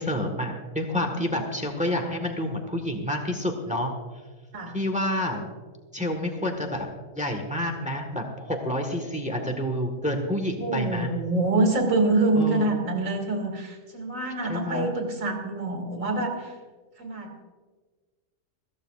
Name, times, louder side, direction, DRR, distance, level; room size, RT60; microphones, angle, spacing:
voice 1, 0.0-3.9 4.7-5.5 5.9-6.9 7.1-11.1 12.3-12.7 14.5-14.9, left 1 dB, 5° right, 3 dB, 1.4 m, -28 dB
voice 2, 10.6-16.5 17.0-17.4, right 2 dB, 75° right, 2 dB, 2.6 m, -26 dB
21.5 x 15.0 x 2.5 m, 1.4 s
omnidirectional pair, 1.4 m